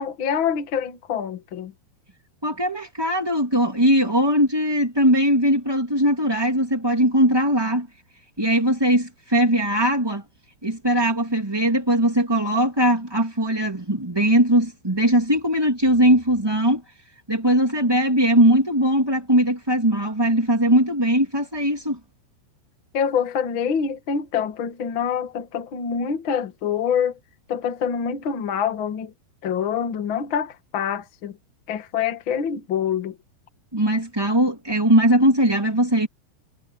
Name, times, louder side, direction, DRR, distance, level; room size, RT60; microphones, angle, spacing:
voice 1, 0.0-1.7 22.9-27.2 27.5-29.1 29.4-31.4 31.7-33.2, left 7 dB, 70° left, 1.1 m, -25 dB
voice 2, 2.4-7.9 8.4-10.2 10.6-16.8 17.3-22.0 33.7-36.1, equal, 10° right, 1.7 m, -20 dB
omnidirectional pair, 5.6 m